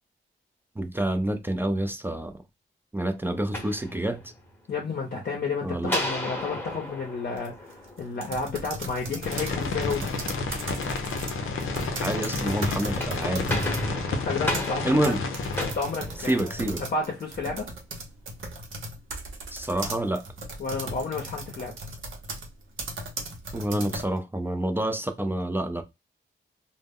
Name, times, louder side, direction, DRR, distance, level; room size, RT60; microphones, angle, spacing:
voice 1, 0.8-2.4 2.9-4.3 5.6-5.9 12.0-13.5 14.8-15.2 16.2-16.8 19.5-20.3 23.5-25.8, right 1 dB, 10° right, 0.3 m, -27 dB
sound 1, 3.3-4.5 5.9-8.3 12.7-16.8, left 1 dB, 10° left, 0.8 m, -33 dB
voice 2, 4.7-10.1 14.1-15.1 15.6-16.5 16.9-17.7 20.6-21.7, left 4 dB, 50° left, 0.6 m, -31 dB
sound 2, 6.4-6.7 7.3-13.9 14.3-24.2, right 2 dB, 75° right, 0.7 m, -37 dB
sound 3, 9.2-15.7, left 3 dB, 90° left, 0.5 m, -31 dB
2.1 x 2.0 x 3.5 m
wide cardioid pair, 100°, 21 cm